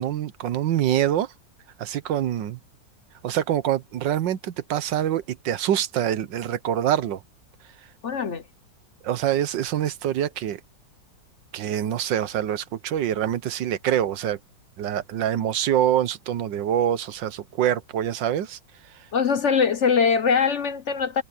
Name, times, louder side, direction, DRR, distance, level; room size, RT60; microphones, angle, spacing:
voice 1, 0.0-1.3 1.8-2.6 3.2-7.2 9.0-10.6 11.5-14.4 14.8-18.6, right 11 dB, 80° right, 1.6 m, -25 dB
voice 2, 8.0-8.4 19.1-21.2, left 6 dB, 50° left, 1.0 m, -22 dB
omnidirectional pair, 2.0 m